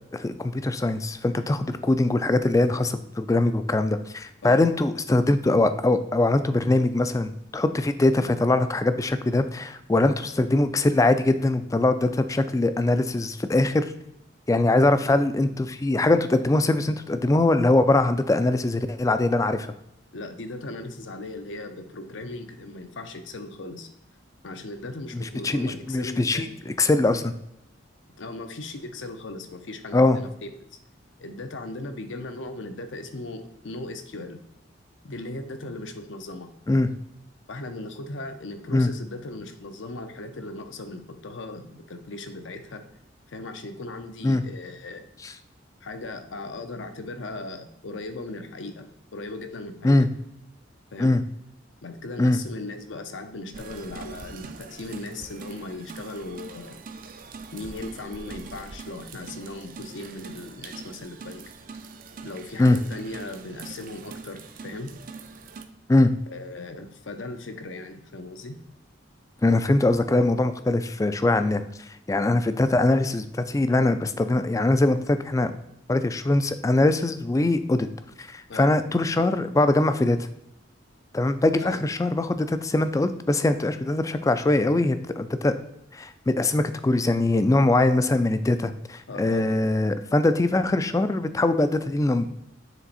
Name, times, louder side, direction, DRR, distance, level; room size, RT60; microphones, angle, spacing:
voice 1, 0.1-13.9 14.5-19.7 25.1-27.3 29.9-30.2 36.7-36.9 38.7-38.9 44.2-44.4 45.2-45.3 49.8-50.1 51.0-51.2 52.2-52.4 62.6-62.8 65.9-66.1 69.4-71.6 72.1-75.5 75.9-77.9 78.2-80.2 81.1-85.5 85.9-92.3, left 2 dB, 15° left, 10 dB, 0.3 m, -22 dB
voice 2, 20.1-23.9 24.4-26.6 28.2-30.3 30.7-30.8 31.2-34.4 35.0-36.5 37.5-42.8 43.3-45.0 45.8-48.9 49.1-50.1 50.9-51.1 51.8-56.8 57.5-61.4 62.2-64.9 66.3-68.6 78.5-78.7 81.6-81.8 89.1-89.4, left 2 dB, 75° left, 7 dB, 0.7 m, -38 dB
sound 1, 53.5-65.7, right 4 dB, 45° right, 0.5 m, -42 dB
7.2 x 3.4 x 4.1 m, 0.80 s
head